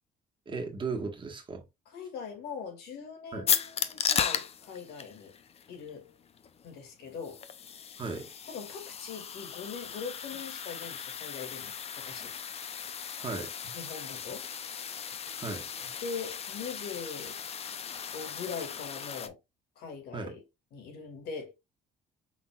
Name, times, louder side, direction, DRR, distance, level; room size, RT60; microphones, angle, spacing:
voice 1, 0.4-1.6 3.3-3.5 8.0-8.3 13.2-13.8 15.4-15.9 20.1-20.4, right 4 dB, 30° right, 1.5 m, -37 dB
voice 2, 1.9-5.3 5.7-6.1 6.6-7.4 8.5-12.3 13.7-14.5 16.0-17.4 18.1-19.4 19.8-20.4 20.7-21.5, left 5 dB, 75° left, 2.1 m, -41 dB
sound 1, 3.5-19.3, left 7 dB, 35° left, 0.6 m, -36 dB
5.9 x 3.6 x 2.4 m
cardioid pair, 110°, 17 cm